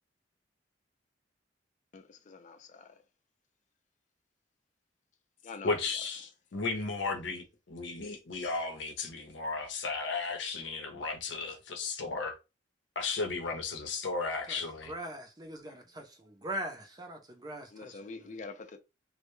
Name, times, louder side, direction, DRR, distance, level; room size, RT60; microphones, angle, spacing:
voice 1, 1.9-3.0 5.4-5.8 17.7-18.8, left 4 dB, 40° left, 0.4 m, -46 dB
voice 2, 5.6-12.4 13.0-14.9, left 4 dB, 85° left, 0.7 m, -35 dB
voice 3, 14.9-18.1, right 1 dB, 20° right, 0.5 m, -41 dB
2.2 x 2.0 x 3.0 m
head